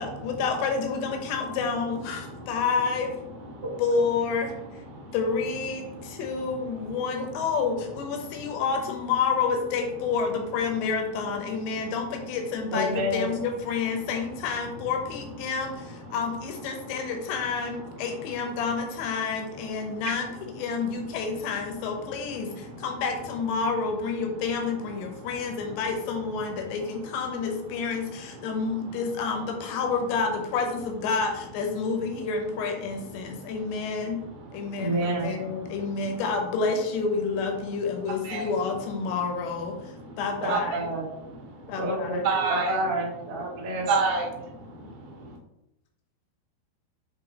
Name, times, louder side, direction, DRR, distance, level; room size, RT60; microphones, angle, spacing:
voice 1, 0.0-3.1 3.8-4.8 5.1-34.2 34.5-39.8 40.2-40.8 41.7-42.2, left 5 dB, 75° left, 3 dB, 2.9 m, -29 dB
voice 2, 5.8-6.1 22.7-22.8 33.2-33.4 34.6-34.9 35.6-35.9 38.2-38.5 40.5-40.6 42.2-42.8 43.9-45.3, right 4 dB, 40° right, -4 dB, 1.7 m, -29 dB
voice 3, 12.7-13.3 34.8-35.3 40.4-41.0 41.8-43.9, right 1 dB, 80° right, -5 dB, 1.3 m, -29 dB
7.6 x 3.2 x 4.1 m, 0.86 s
omnidirectional pair, 5.5 m